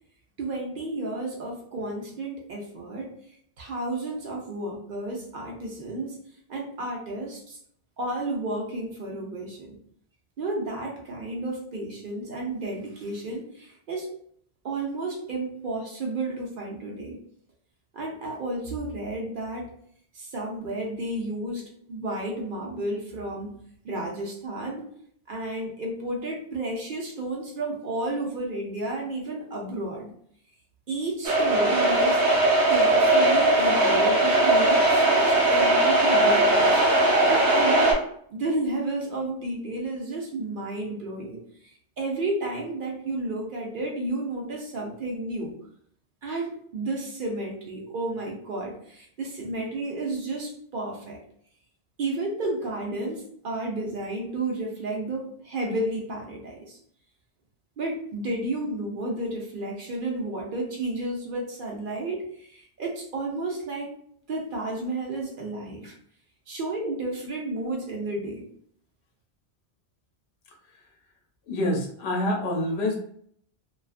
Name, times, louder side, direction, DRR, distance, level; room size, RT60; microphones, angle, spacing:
voice 1, 0.4-3.1 3.6-6.2 6.5-7.6 8.0-9.7 10.4-14.1 14.6-17.2 17.9-19.7 20.1-23.5 23.8-24.8 25.3-30.1 30.9-32.2 32.7-36.8 37.3-38.0 38.3-41.4 42.0-45.5 46.2-51.2 52.0-56.8 57.8-63.9 64.3-65.9 66.5-68.5, right 2 dB, 55° right, -1 dB, 0.8 m, -32 dB
sound 1, 31.2-37.9, right 1 dB, 85° right, 1.2 m, -20 dB
voice 2, 71.5-73.0, left 1 dB, 80° left, 1 dB, 0.9 m, -26 dB
2.3 x 2.3 x 2.4 m, 0.64 s
omnidirectional pair, 1.1 m